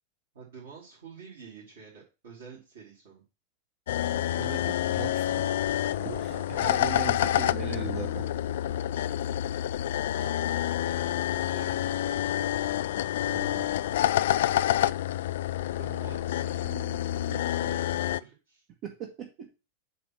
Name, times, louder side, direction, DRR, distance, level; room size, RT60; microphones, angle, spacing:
voice 1, 0.3-3.2 5.9-7.2 10.2-12.6 15.5-18.6, right 6 dB, 60° right, -6 dB, 2.9 m, -47 dB
sound 1, 3.9-18.2, left 12 dB, 55° left, 0.3 m, -28 dB
voice 2, 4.0-5.8 6.2-6.4 6.6-8.3 13.3-13.7 18.8-19.5, right 7 dB, 40° right, 3 dB, 1.1 m, -39 dB
8.3 x 3.2 x 5.9 m, 0.29 s
figure-of-eight pair, 90°, 0 cm